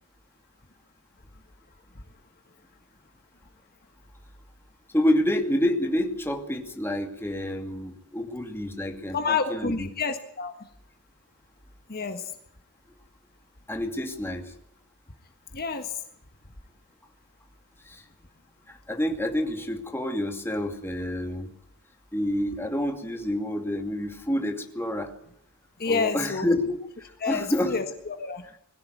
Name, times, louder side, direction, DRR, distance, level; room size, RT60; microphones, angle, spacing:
voice 1, 4.9-9.9 13.7-14.5 17.9-18.0 18.7-21.5 22.1-25.1 25.8-26.8 27.3-27.8, left 1 dB, 10° left, 4 dB, 2.5 m, -28 dB
voice 2, 9.1-10.5 11.9-12.2 15.5-15.9 25.8-26.5 27.2-28.4, left 5 dB, 45° left, 7 dB, 1.6 m, -28 dB
21.5 x 15.5 x 9.4 m, 0.67 s
head